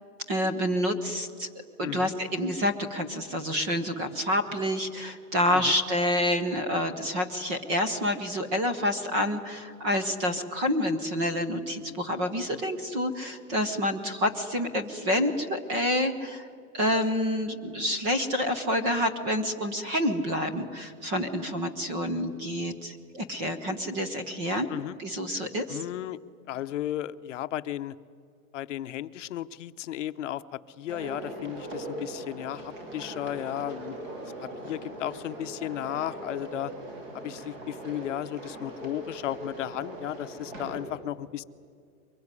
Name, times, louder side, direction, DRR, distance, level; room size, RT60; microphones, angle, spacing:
voice 1, 0.3-1.5 1.8-16.5 16.7-24.7 25.0-25.8, left 1 dB, 15° right, 10 dB, 0.6 m, -28 dB
voice 2, 1.8-2.1 5.5-5.8 24.7-25.0 25.7-26.2 26.5-27.9 28.5-34.0 34.4-36.7 37.1-41.4, left 12 dB, 55° left, 11 dB, 0.8 m, -34 dB
sound 1, 30.9-40.8, right 1 dB, 40° right, 6.6 m, -40 dB
23.5 x 21.5 x 9.7 m, 2.3 s
supercardioid pair, 175°, 45 cm